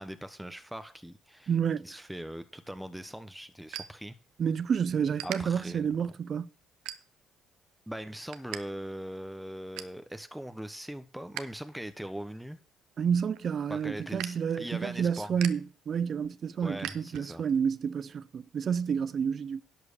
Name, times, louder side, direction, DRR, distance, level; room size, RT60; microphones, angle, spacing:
voice 1, 0.0-1.5 1.8-4.1 5.2-5.9 7.9-12.6 13.7-15.3 16.6-17.5, right 1 dB, 5° right, 1.0 m, -41 dB
voice 2, 1.5-2.0 4.4-6.5 13.0-19.6, right 7 dB, 55° right, 0.5 m, -29 dB
sound 1, 2.6-4.7 4.9-5.4 6.0-6.2 6.7-7.4 7.8-8.6 8.9-9.0 9.4-10.0 10.5-11.4 11.8-17.6, right 12 dB, 85° right, 0.8 m, -43 dB
11.0 x 4.8 x 6.8 m
supercardioid pair, 70°, 0 cm